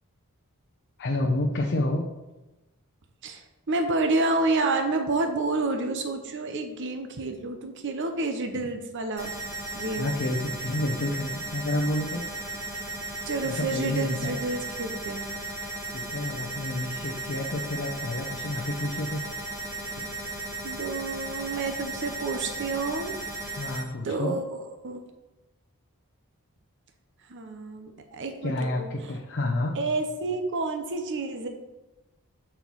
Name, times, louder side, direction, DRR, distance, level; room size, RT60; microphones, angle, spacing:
voice 1, 1.0-2.0 10.0-12.2 13.4-14.3 15.9-19.2 23.6-24.3 28.4-29.8, left 1 dB, 50° left, 0 dB, 0.7 m, -29 dB
voice 2, 3.2-9.3 9.7-10.1 13.3-15.3 20.6-23.1 23.4-23.5 24.0-25.0 27.3-29.1 29.7-31.5, right 3 dB, 55° right, 5 dB, 0.7 m, -29 dB
sound 1, 9.2-23.8, right 2 dB, 15° right, 1.9 m, -36 dB
5.5 x 4.4 x 6.1 m, 1.0 s
head